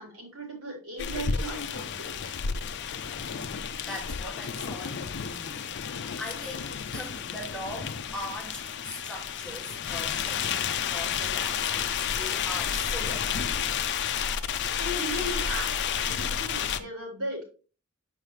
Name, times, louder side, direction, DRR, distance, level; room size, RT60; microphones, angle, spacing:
voice 1, 0.0-2.4 14.7-17.4, right 1 dB, 90° right, 4.1 m, -37 dB
sound 1, 1.0-16.8, left 7 dB, 55° left, 0.6 m, -31 dB
voice 2, 3.8-13.5, equal, 5° left, 1.9 m, -41 dB
7.2 x 5.7 x 3.2 m
head